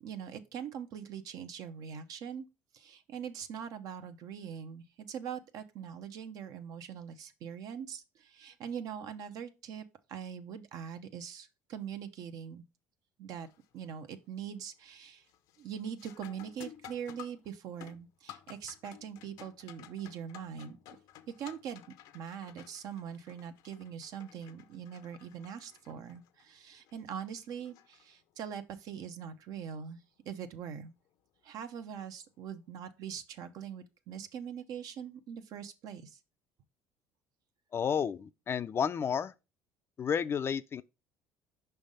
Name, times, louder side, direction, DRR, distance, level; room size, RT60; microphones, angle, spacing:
voice 1, 0.0-2.5 2.7-12.6 13.2-13.5 13.7-15.2 15.6-21.0 21.4-21.8 22.1-30.9 31.4-36.2, right 8 dB, 65° right, 0.8 m, -42 dB
sound 1, 13.4-13.8 14.2-14.7 15.0-28.5 31.0-31.1 32.0-32.2, left 11 dB, 75° left, 0.7 m, -54 dB
voice 2, 37.7-39.3 40.0-40.8, left 7 dB, 40° left, 0.4 m, -31 dB
5.4 x 3.4 x 5.3 m
supercardioid pair, 90°, 7 cm